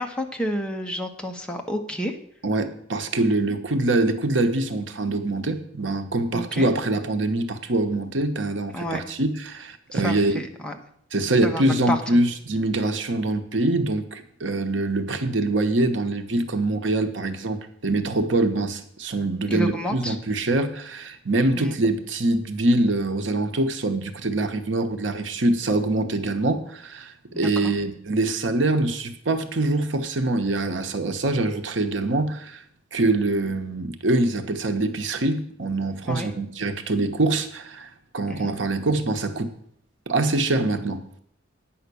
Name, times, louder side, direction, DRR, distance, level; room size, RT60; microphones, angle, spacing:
voice 1, 0.0-2.2 6.3-6.7 8.7-9.0 9.9-10.8 11.4-12.0 19.5-20.1 21.5-21.8 27.3-27.7 36.0-36.3 38.3-38.5, equal, 5° left, 2 dB, 1.1 m, -30 dB
voice 2, 2.4-10.4 11.1-32.6 32.9-39.5 40.1-41.2, right 2 dB, 80° right, 7 dB, 1.0 m, -24 dB
9.5 x 5.8 x 8.2 m, 0.67 s
head